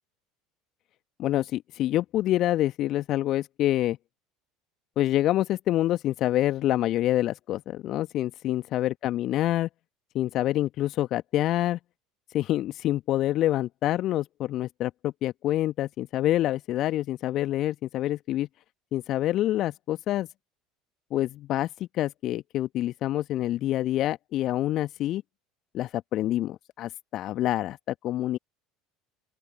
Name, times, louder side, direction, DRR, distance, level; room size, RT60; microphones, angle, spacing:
voice 1, 1.2-4.0 5.0-9.7 10.1-11.8 12.3-18.5 18.9-20.3 21.1-25.2 25.7-28.4, left 14 dB, 50° left, 1.1 m, -27 dB
open air
figure-of-eight pair, 65°, 0 cm